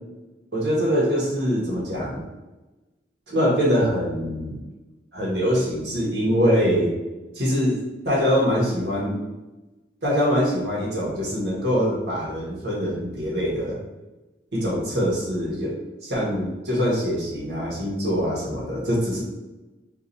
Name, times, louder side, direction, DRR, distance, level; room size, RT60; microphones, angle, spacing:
voice 1, 0.5-2.2 3.3-4.6 5.1-6.9 7.3-9.2 10.0-13.8 14.5-15.7 16.0-19.2, equal, 75° right, -4 dB, 1.3 m, -23 dB
2.8 x 2.6 x 3.9 m, 1.1 s
head